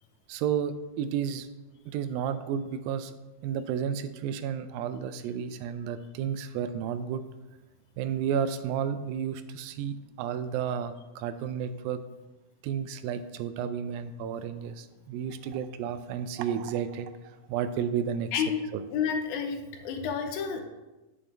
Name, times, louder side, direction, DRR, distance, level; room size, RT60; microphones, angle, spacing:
voice 1, 0.3-1.5 1.9-3.1 3.4-7.2 8.0-12.0 12.6-18.4 18.7-18.8, right 8 dB, 90° right, 11 dB, 2.3 m, -32 dB
voice 2, 18.9-20.6, left 7 dB, 90° left, 5 dB, 2.6 m, -30 dB
8.7 x 7.0 x 3.4 m, 1.1 s
omnidirectional pair, 4.1 m